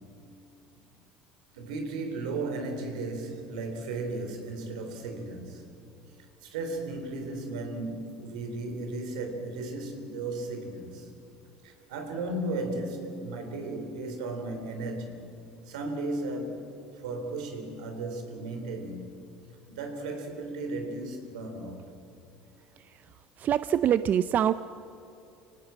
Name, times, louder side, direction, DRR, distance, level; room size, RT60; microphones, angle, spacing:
voice 1, 1.5-5.7 6.4-11.1 11.6-15.3 15.7-16.6 16.9-19.1 19.7-21.9, right 2 dB, 85° right, 3.8 m, -35 dB
voice 2, 23.4-24.5, right 10 dB, 50° right, 0.6 m, -24 dB
26.5 x 18.0 x 7.5 m
hypercardioid pair, 80°, 4 cm